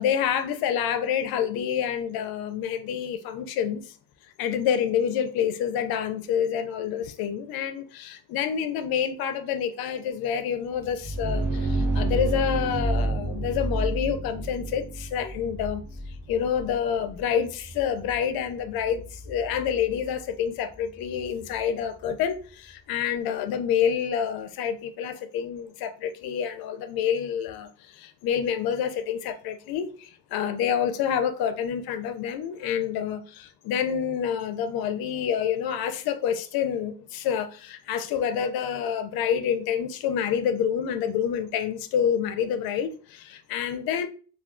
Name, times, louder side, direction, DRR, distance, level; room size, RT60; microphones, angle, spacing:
voice 1, 0.0-4.0 4.4-15.8 16.3-44.1, left 8 dB, 60° left, 0.5 m, -28 dB
sound 1, 10.8-22.4, right 2 dB, 25° right, 1.2 m, -31 dB
2.4 x 2.2 x 3.6 m
cardioid pair, 165°, 42 cm